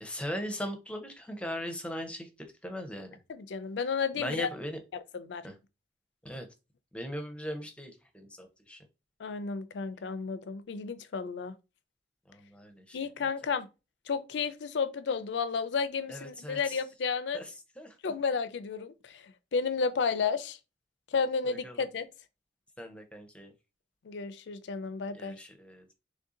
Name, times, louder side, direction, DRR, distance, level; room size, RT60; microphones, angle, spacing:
voice 1, 0.0-2.3 2.6-3.2 4.2-4.8 5.4-5.5 6.2-6.5 6.9-8.8 12.3-13.0 16.1-16.8 17.3-17.5 17.8-17.9 21.5-21.8 22.8-23.5 25.1-26.0, equal, 5° left, 0.6 m, -39 dB
voice 2, 3.3-4.5 5.1-5.5 9.2-11.5 12.9-13.7 14.1-17.4 18.0-20.6 21.1-22.1 24.0-25.4, left 5 dB, 80° left, 0.4 m, -32 dB
3.2 x 2.6 x 3.7 m
head